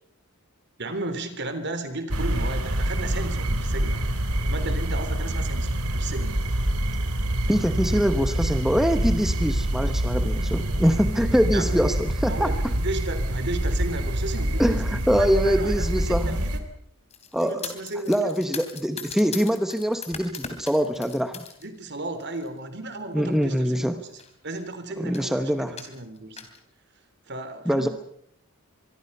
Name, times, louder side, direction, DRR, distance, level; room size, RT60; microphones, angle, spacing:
voice 1, 0.8-4.0 4.5-6.4 11.5-11.8 12.3-16.6 17.4-18.4 21.6-24.1 24.4-26.4 27.3-27.9, right 2 dB, 50° right, 9 dB, 3.4 m, -34 dB
sound 1, 2.1-16.6, right 1 dB, 85° right, 3.1 m, -26 dB
voice 2, 7.5-12.7 14.6-16.4 17.3-17.6 18.1-21.4 23.1-24.0 25.0-25.8 27.7-27.9, equal, ahead, 8 dB, 1.0 m, -24 dB
sound 2, 17.1-21.7 22.0-22.5 23.3-23.4 23.8-23.9 24.1-24.7 25.1-25.3 25.8-26.6, left 6 dB, 30° left, 3.4 m, -39 dB
24.5 x 24.0 x 5.6 m, 0.68 s
head